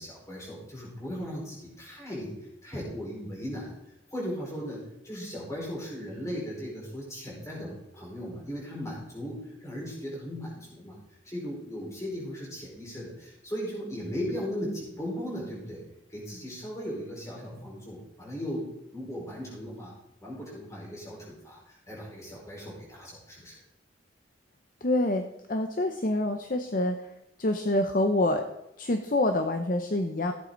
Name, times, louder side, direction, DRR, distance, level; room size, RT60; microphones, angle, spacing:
voice 1, 0.0-2.4 2.6-3.7 4.1-11.0 11.2-15.8 16.1-19.9 20.2-23.6, equal, 15° left, -4 dB, 4.6 m, -37 dB
voice 2, 24.8-27.0 27.4-28.4 28.8-30.3, left 1 dB, 45° left, 6 dB, 0.7 m, -26 dB
15.5 x 8.2 x 3.9 m, 0.88 s
head